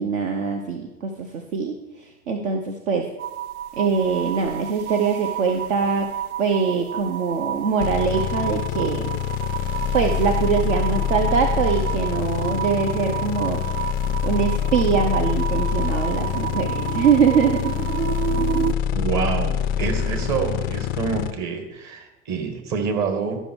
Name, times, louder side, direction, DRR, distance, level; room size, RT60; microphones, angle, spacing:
voice 1, 0.0-3.1 3.8-6.1 6.4-9.1 9.9-13.6 14.2-17.7, right 6 dB, 60° right, 4 dB, 1.0 m, -23 dB
sound 1, 3.2-18.7, right 11 dB, 90° right, 0.5 m, -31 dB
sound 2, 7.8-21.3, left 10 dB, 25° left, 0.4 m, -25 dB
voice 2, 18.9-23.4, right 6 dB, 40° right, 5 dB, 1.8 m, -27 dB
12.5 x 5.5 x 4.7 m, 1.0 s
figure-of-eight pair, 85°, 42 cm